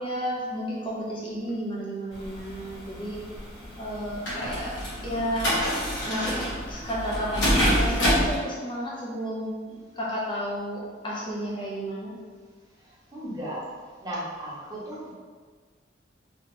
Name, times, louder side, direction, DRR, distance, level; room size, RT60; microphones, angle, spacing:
voice 1, 0.0-3.2 3.8-5.6 6.1-12.2, equal, 25° left, -6 dB, 0.8 m, -32 dB
sound 1, 2.1-8.4, equal, 80° left, 1.3 m, -27 dB
voice 2, 12.9-13.6 14.0-15.1, right 1 dB, 20° right, -8 dB, 1.0 m, -36 dB
3.1 x 2.8 x 3.1 m, 1.6 s
head